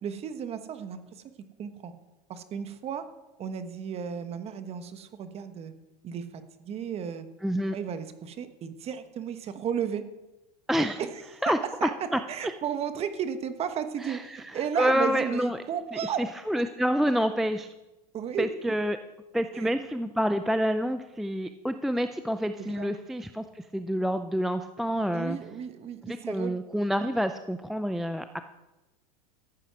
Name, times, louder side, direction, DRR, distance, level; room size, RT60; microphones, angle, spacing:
voice 1, 0.0-1.2 1.6-1.9 2.3-3.0 3.4-5.7 6.0-7.3 7.7-10.0 11.0-11.5 11.8-11.9 12.3-16.2 18.1-18.7 19.5-19.7 22.6-22.9 25.1-26.5, right 8 dB, 30° right, 10 dB, 1.2 m, -34 dB
voice 2, 7.4-7.8 10.7-11.0 11.4-12.5 14.0-14.2 14.8-15.6 15.9-16.0 16.5-17.7 18.4-19.0 19.3-25.4 26.0-28.4, equal, ahead, 9 dB, 0.4 m, -28 dB
14.5 x 9.0 x 6.1 m, 1.0 s
supercardioid pair, 135°, 21 cm